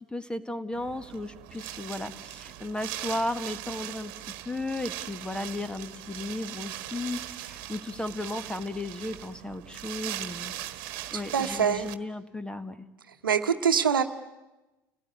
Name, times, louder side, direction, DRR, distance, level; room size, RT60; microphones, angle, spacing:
voice 1, 0.1-10.5 11.1-12.8, left 2 dB, 10° left, 12 dB, 1.7 m, -35 dB
Wind, 0.7-11.9, right 14 dB, 55° right, 1.6 m, -40 dB
voice 2, 11.1-11.9 13.1-14.0, right 7 dB, 85° right, 9 dB, 1.1 m, -25 dB
30.0 x 18.0 x 9.6 m, 1.1 s
figure-of-eight pair, 75°, 11 cm